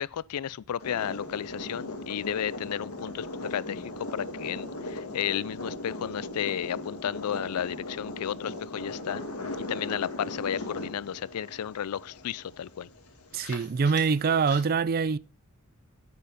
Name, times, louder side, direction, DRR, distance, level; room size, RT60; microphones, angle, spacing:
voice 1, 0.0-9.2 9.7-12.9, left 9 dB, 90° left, 0.4 m, -33 dB
sound 1, 0.8-14.6, left 2 dB, 75° left, 2.3 m, -38 dB
voice 2, 13.3-15.2, right 5 dB, 40° right, 0.4 m, -24 dB
10.0 x 8.5 x 4.1 m
head